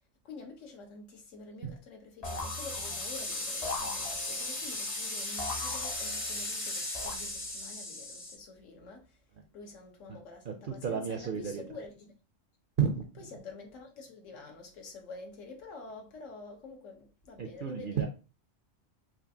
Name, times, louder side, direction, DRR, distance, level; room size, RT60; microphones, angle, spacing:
voice 1, 0.2-9.2 9.5-12.1 13.2-18.1, left 3 dB, 75° left, 1.3 m, -48 dB
sound 1, 2.2-8.3, left 2 dB, 60° left, 1.7 m, -37 dB
sound 2, 2.2-3.2 3.6-4.6 5.4-6.4 6.9-7.7, left 3 dB, 40° left, 0.6 m, -40 dB
voice 2, 10.5-11.6 12.8-13.1 17.4-18.1, right 7 dB, 60° right, 0.6 m, -32 dB
4.3 x 2.5 x 2.7 m
omnidirectional pair, 1.3 m